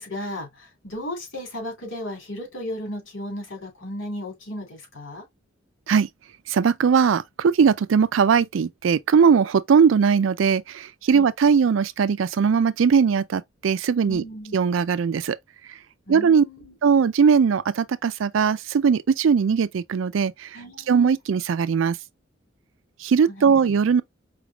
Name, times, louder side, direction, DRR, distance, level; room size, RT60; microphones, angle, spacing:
voice 1, 0.0-5.3 11.1-11.3 14.1-14.5 16.1-16.8 20.5-20.9 23.3-23.5, left 1 dB, 70° left, 2.7 m, -35 dB
voice 2, 6.5-14.2 14.5-15.4 16.1-16.4 16.8-20.5 20.9-22.0 23.0-24.0, right 6 dB, 75° right, 0.4 m, -20 dB
5.0 x 3.3 x 2.3 m
head